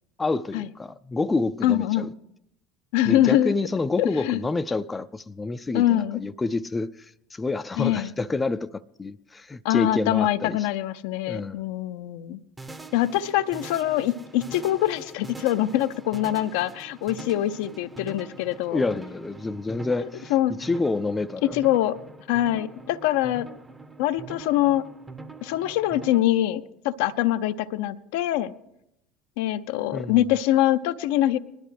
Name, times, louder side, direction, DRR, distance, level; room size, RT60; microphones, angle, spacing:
voice 1, 0.2-2.1 3.1-10.6 11.3-11.6 18.7-20.3 20.6-21.6 29.9-30.2, left 3 dB, 20° left, 0.5 m, -28 dB
voice 2, 1.6-2.1 2.9-3.5 4.0-4.4 5.7-6.2 7.8-8.1 9.6-12.4 12.9-18.8 20.0-20.5 21.4-22.0 22.3-23.5 24.0-24.8 25.4-28.5 29.4-31.4, left 13 dB, 70° left, 0.6 m, -24 dB
sound 1, 12.6-26.2, right 3 dB, 15° right, 0.9 m, -43 dB
20.5 x 12.0 x 3.3 m
hypercardioid pair, 70°, 0 cm